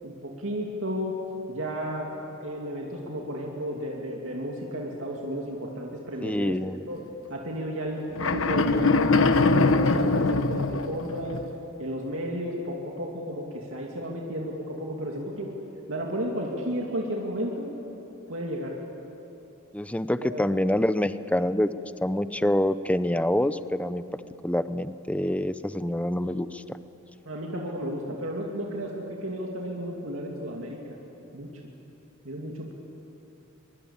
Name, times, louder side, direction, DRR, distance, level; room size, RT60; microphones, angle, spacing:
voice 1, 0.0-1.1 1.5-2.1 2.4-6.6 6.9-7.0 7.3-11.4 11.8-15.5 15.9-17.7 18.3-18.8 20.2-20.6 27.2-30.8 31.3-31.5 32.2-32.7, equal, 70° right, -1 dB, 2.6 m, -33 dB
voice 2, 6.2-6.8 19.7-21.7 22.0-24.0 24.4-26.6, left 1 dB, 5° left, 13 dB, 0.6 m, -26 dB
sound 1, 8.2-11.5, left 3 dB, 70° left, 1.0 m, -22 dB
23.5 x 23.0 x 8.7 m, 2.9 s
head